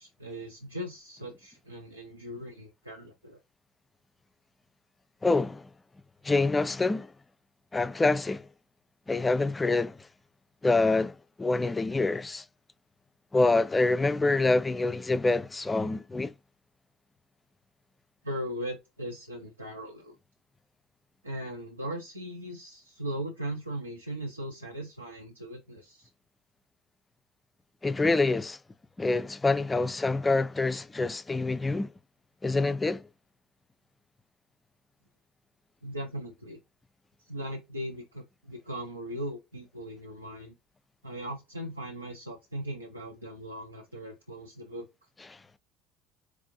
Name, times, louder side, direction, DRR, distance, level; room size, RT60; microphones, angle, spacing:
voice 1, 0.0-3.4 18.2-20.2 21.2-26.1 35.8-36.6 37.2-40.6 41.0-44.9, equal, 90° right, 0.5 m, -39 dB
voice 2, 5.2-5.7 6.2-7.1 7.7-8.5 9.1-10.0 10.6-12.4 13.3-16.3 27.8-28.6 29.0-31.9 32.4-33.0, left 3 dB, 20° left, 0.3 m, -26 dB
4.6 x 2.5 x 2.6 m
figure-of-eight pair, 60°, 0 cm